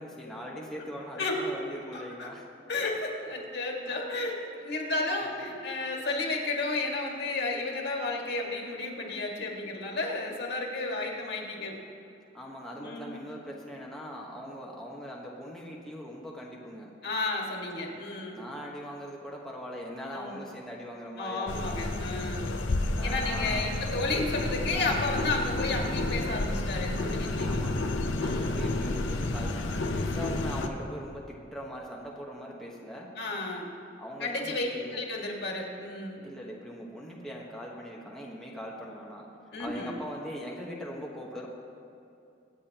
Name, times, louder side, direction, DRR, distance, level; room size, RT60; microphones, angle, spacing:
voice 1, 0.0-2.5 3.9-4.0 5.2-5.5 12.3-16.9 18.3-21.9 22.9-23.7 27.5-27.8 28.2-33.2 34.0-35.0 36.2-39.3 39.6-41.5, equal, 5° left, -4 dB, 1.2 m, -41 dB
voice 2, 1.2-1.5 1.9-2.3 2.7-11.7 12.8-13.2 17.0-18.4 20.1-20.4 21.2-22.5 23.0-27.6 28.2-28.6 32.5-32.6 33.2-33.7 34.2-36.2 39.5-40.0, left 2 dB, 60° left, -1 dB, 1.9 m, -32 dB
sound 1, 21.5-30.7, left 2 dB, 85° left, 0.8 m, -30 dB
24.5 x 8.5 x 2.9 m, 2.6 s
head